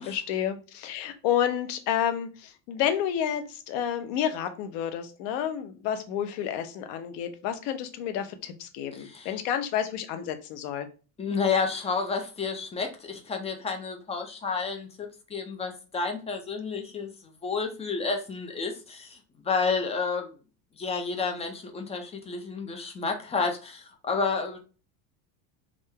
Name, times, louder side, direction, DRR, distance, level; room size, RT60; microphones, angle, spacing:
voice 1, 0.0-10.9, left 9 dB, 60° left, 8 dB, 0.8 m, -30 dB
voice 2, 9.0-9.3 11.2-17.1 17.4-19.2 19.4-20.3 20.8-24.6, left 4 dB, 15° left, 4 dB, 0.5 m, -30 dB
3.7 x 2.6 x 3.3 m, 0.35 s
supercardioid pair, 145°, 46 cm